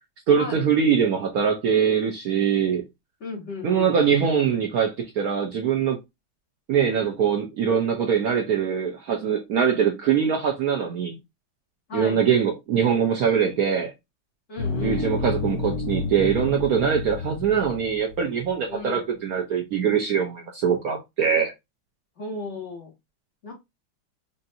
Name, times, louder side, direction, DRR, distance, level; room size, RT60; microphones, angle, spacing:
voice 1, 0.3-2.8 3.6-6.0 6.7-11.2 11.9-13.9 14.8-21.5, right 7 dB, 65° right, 0.9 m, -22 dB
voice 2, 3.2-3.9 11.9-12.2 14.5-15.1 18.7-19.1 22.2-22.9 23.4-23.5, left 3 dB, 40° left, 1.6 m, -35 dB
sound 1, 14.6-18.4, left 3 dB, 55° left, 1.4 m, -30 dB
5.4 x 2.5 x 2.6 m
omnidirectional pair, 2.2 m